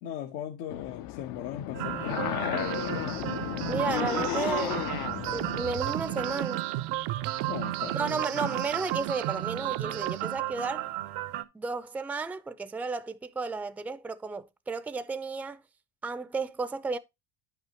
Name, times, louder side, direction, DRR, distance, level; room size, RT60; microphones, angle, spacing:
voice 1, 0.0-3.2 7.4-8.5, left 10 dB, 90° left, 1.2 m, -39 dB
sound 1, 0.7-6.3, left 15 dB, 55° left, 0.5 m, -34 dB
sound 2, 1.7-11.4, right 14 dB, 85° right, 1.0 m, -34 dB
sound 3, 2.1-10.4, right 16 dB, 65° right, 0.5 m, -36 dB
voice 2, 3.7-4.8 5.3-6.6 7.9-10.9 11.5-15.6 16.0-17.0, right 4 dB, 5° right, 0.4 m, -33 dB
10.5 x 5.8 x 2.9 m
cardioid pair, 125°, 46 cm